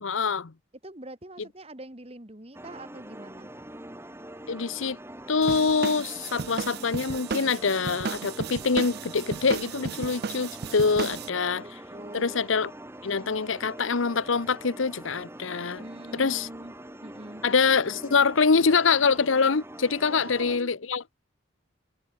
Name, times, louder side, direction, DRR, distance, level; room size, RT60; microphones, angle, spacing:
voice 1, 0.0-0.5 4.5-5.0 5.3-11.7 12.1-12.7 13.0-15.8 16.1-16.5 17.4-21.0, left 5 dB, 80° left, 0.9 m, -25 dB
voice 2, 0.8-3.5 10.9-12.4 15.8-17.4 20.0-20.7, right 1 dB, 30° right, 2.2 m, -44 dB
sound 1, 2.5-20.6, right 1 dB, 10° right, 4.1 m, -44 dB
sound 2, 5.4-11.3, right 5 dB, 50° right, 0.5 m, -34 dB
head